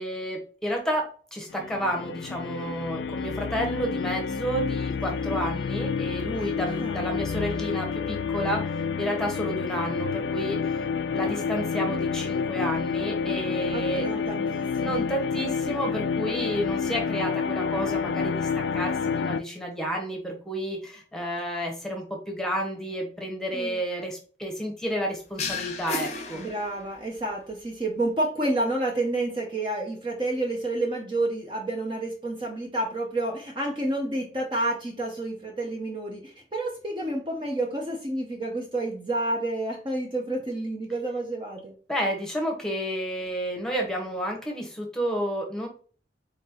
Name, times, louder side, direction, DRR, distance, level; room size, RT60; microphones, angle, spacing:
voice 1, 0.0-10.8 11.1-14.1 14.8-26.4 41.9-45.7, equal, 5° left, 1 dB, 1.1 m, -31 dB
sound 1, 1.5-19.4, left 5 dB, 80° left, 0.3 m, -29 dB
voice 2, 6.4-7.1 11.2-11.6 13.7-15.0 23.5-23.8 26.3-41.7, right 2 dB, 25° right, 0 dB, 0.7 m, -30 dB
sound 2, 25.4-27.1, left 4 dB, 40° left, 0.7 m, -33 dB
4.2 x 4.1 x 2.8 m, 0.40 s
head